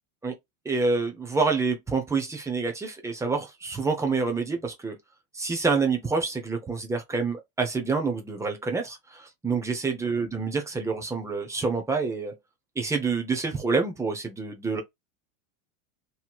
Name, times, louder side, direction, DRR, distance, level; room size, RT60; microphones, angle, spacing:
voice 1, 0.6-5.0 5.3-12.4 12.8-14.8, right 4 dB, 5° right, 0.6 m, -27 dB
3.0 x 2.8 x 2.3 m
supercardioid pair, 140°, 42 cm